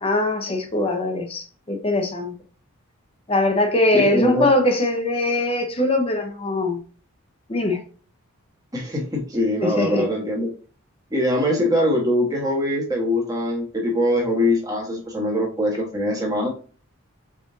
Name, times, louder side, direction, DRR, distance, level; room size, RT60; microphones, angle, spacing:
voice 1, 0.0-2.3 3.3-6.8 7.5-7.8 9.6-10.0, left 2 dB, 25° left, 0.8 m, -21 dB
voice 2, 3.9-4.5 8.7-10.5 11.1-16.5, left 1 dB, 15° right, 1.2 m, -22 dB
4.1 x 3.6 x 2.6 m
head